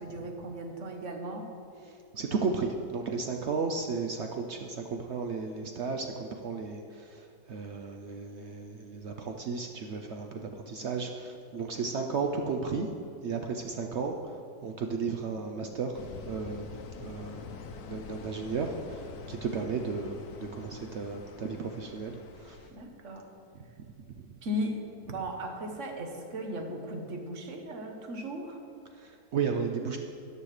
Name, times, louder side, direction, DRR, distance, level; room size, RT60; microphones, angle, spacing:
voice 1, 0.0-1.5 22.7-23.3 24.4-28.6, equal, 50° right, 4 dB, 1.2 m, -37 dB
voice 2, 1.9-12.9 13.2-16.7 17.0-17.5 17.8-22.6 23.8-24.4 28.9-30.0, right 5 dB, 75° right, 3 dB, 0.6 m, -34 dB
sound 1, 15.9-22.7, left 5 dB, 70° left, 1.1 m, -45 dB
13.5 x 9.5 x 3.3 m, 2.6 s
omnidirectional pair, 1.9 m